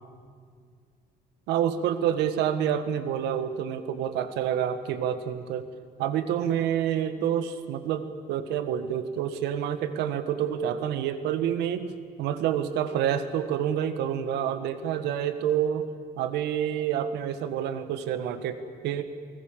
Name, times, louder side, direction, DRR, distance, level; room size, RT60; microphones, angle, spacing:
voice 1, 1.5-5.7 6.0-11.9 12.2-15.9 16.2-19.0, right 9 dB, 85° right, 11 dB, 1.7 m, -28 dB
29.0 x 19.5 x 7.5 m, 2.1 s
cardioid pair, 110°, 17 cm